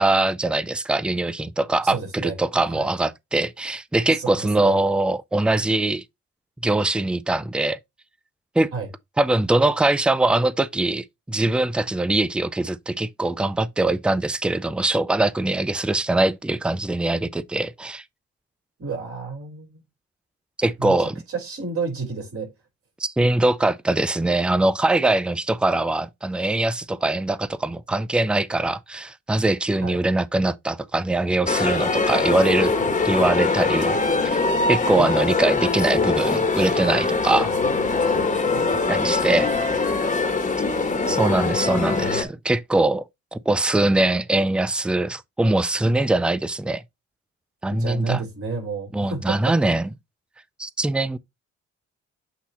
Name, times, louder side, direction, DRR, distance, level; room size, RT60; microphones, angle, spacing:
voice 1, 0.0-6.0 6.6-7.8 8.6-8.7 9.2-18.0 20.6-21.2 23.0-32.7 33.0-34.4 34.7-37.5 38.9-39.5 41.1-43.0 43.3-46.8 47.6-48.2 48.9-49.9 50.6-51.2, right 2 dB, 5° right, 0.4 m, -22 dB
voice 2, 1.8-2.4 2.7-2.9 4.1-4.8 8.7-8.9 18.8-19.8 20.8-22.5 29.8-30.0 34.9-35.2 38.5-39.3 47.7-49.5, right 4 dB, 45° right, 3.6 m, -31 dB
sound 1, 31.5-42.2, left 3 dB, 25° left, 1.5 m, -22 dB
8.3 x 2.8 x 4.1 m
cardioid pair, 90°, 30 cm